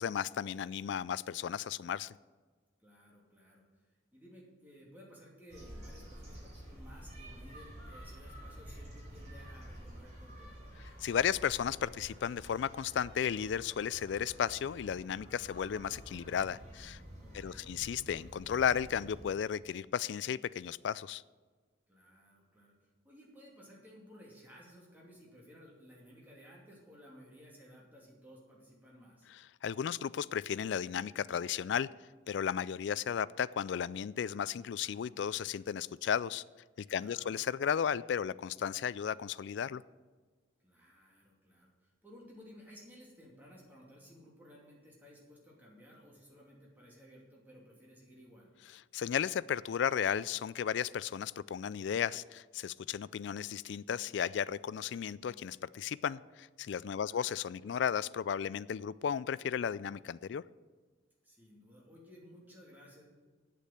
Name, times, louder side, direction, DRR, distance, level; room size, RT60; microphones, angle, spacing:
voice 1, 0.0-2.2 11.0-17.0 17.3-21.2 29.6-31.9 32.3-36.4 36.8-39.8 48.9-60.4, left 8 dB, 65° left, 19 dB, 0.3 m, -34 dB
voice 2, 2.8-10.6 17.2-17.7 21.9-29.3 36.9-37.3 40.6-48.5 56.9-57.2 61.2-63.0, equal, 10° right, -4 dB, 2.7 m, -57 dB
sound 1, 5.5-19.2, equal, 35° right, 3.9 m, -50 dB
8.5 x 8.3 x 8.8 m, 1.4 s
head